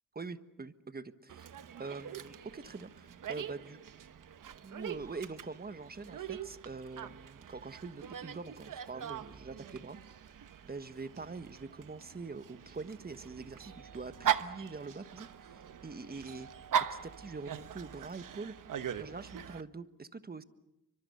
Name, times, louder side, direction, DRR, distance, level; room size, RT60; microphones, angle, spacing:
voice 1, 0.1-1.5 1.8-3.8 4.6-10.0 10.6-16.5 16.9-18.5 19.0-20.4, right 4 dB, 30° right, 12 dB, 1.4 m, -44 dB
Dog, 1.3-19.6, right 9 dB, 70° right, 1.1 m, -41 dB
30.0 x 24.5 x 6.9 m, 0.87 s
cardioid pair, 85°, 33 cm